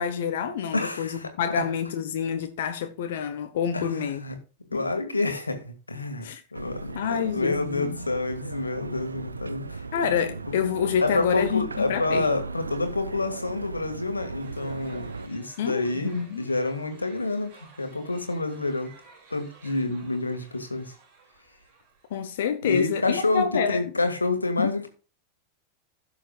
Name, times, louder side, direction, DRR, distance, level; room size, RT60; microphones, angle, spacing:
voice 1, 0.0-4.2 6.2-6.4 6.9-8.0 9.9-12.3 15.6-16.4 22.1-23.8 24.6-24.7, left 7 dB, 55° left, 1.0 m, -27 dB
voice 2, 0.7-1.6 3.7-4.4 4.7-9.8 11.0-18.9 19.3-20.9 22.6-24.9, left 2 dB, 80° left, 1.9 m, -28 dB
sound 1, 6.5-15.3, right 4 dB, 75° right, 0.6 m, -37 dB
sound 2, 14.4-22.5, right 4 dB, 45° right, 5.3 m, -54 dB
16.5 x 7.0 x 2.4 m
figure-of-eight pair, 90°, 0 cm